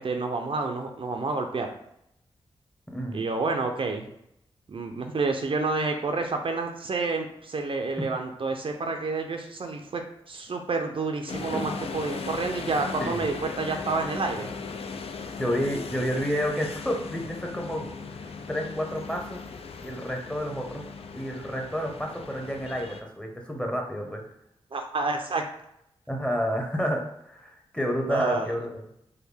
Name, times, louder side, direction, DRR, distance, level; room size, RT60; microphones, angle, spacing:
voice 1, 0.0-1.7 3.1-4.1 4.7-14.5 24.7-25.4 28.1-28.5, right 3 dB, 50° right, 4 dB, 0.5 m, -29 dB
voice 2, 2.9-3.2 11.5-11.7 13.0-13.3 15.4-17.9 18.2-19.4 19.8-20.8 21.1-24.2 26.1-28.7, equal, 10° left, 2 dB, 0.9 m, -30 dB
sound 1, 11.3-23.0, left 4 dB, 60° left, 0.4 m, -38 dB
3.4 x 2.2 x 3.4 m, 0.76 s
cardioid pair, 45°, 11 cm